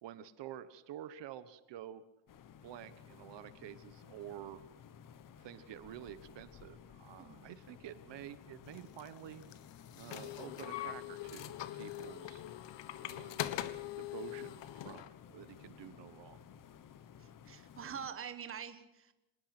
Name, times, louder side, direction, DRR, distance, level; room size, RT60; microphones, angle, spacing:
voice 1, 0.0-2.0 2.6-4.6 5.4-9.5 9.9-12.5 13.0-16.4, right 11 dB, 75° right, 13 dB, 1.3 m, -49 dB
sound 1, 2.3-18.1, left 8 dB, 45° left, 1.2 m, -56 dB
sound 2, 8.7-15.1, left 13 dB, 75° left, 1.5 m, -42 dB
voice 2, 17.2-19.1, right 7 dB, 30° right, 9 dB, 1.5 m, -45 dB
26.0 x 19.5 x 6.0 m, 0.94 s
cardioid pair, 180°, 44 cm